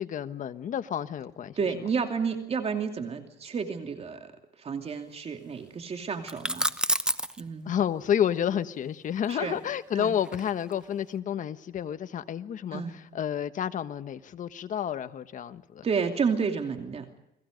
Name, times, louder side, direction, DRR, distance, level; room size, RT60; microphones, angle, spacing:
voice 1, 0.0-1.6 7.6-12.8 13.1-15.9, left 9 dB, 50° left, 11 dB, 1.4 m, -30 dB
voice 2, 1.5-4.3 4.6-6.7 7.4-7.7 9.3-9.6 9.9-10.2 12.7-13.0 15.8-17.1, right 5 dB, 35° right, 5 dB, 2.8 m, -31 dB
sound 1, 6.3-7.4 9.2-10.8, right 1 dB, 5° right, 1.0 m, -29 dB
30.0 x 21.0 x 5.3 m, 0.85 s
cardioid pair, 110°, 17 cm